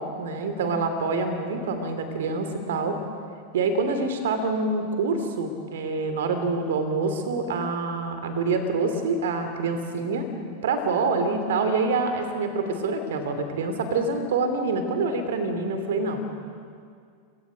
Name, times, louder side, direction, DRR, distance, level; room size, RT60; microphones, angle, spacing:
voice 1, 0.0-3.0 3.5-10.3 10.6-16.2, right 3 dB, 60° right, 8 dB, 2.7 m, -26 dB
28.5 x 18.5 x 5.2 m, 2.2 s
figure-of-eight pair, 90°, 0 cm